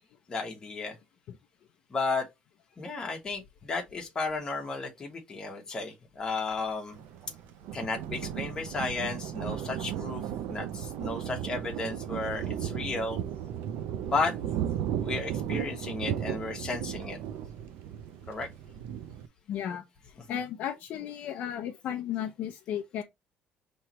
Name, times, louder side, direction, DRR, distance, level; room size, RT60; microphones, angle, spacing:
voice 1, 0.3-1.0 1.9-2.3 2.8-7.0 7.7-10.2 10.5-13.2 14.1-14.3 15.0-17.2 18.3-18.5 20.2-20.4, left 3 dB, 20° left, 1.3 m, -33 dB
Thunder, 6.9-19.3, right 10 dB, 75° right, 0.5 m, -35 dB
voice 2, 19.5-19.8 20.3-23.0, left 10 dB, 55° left, 0.6 m, -34 dB
5.6 x 3.1 x 3.0 m
cardioid pair, 170°, 3 cm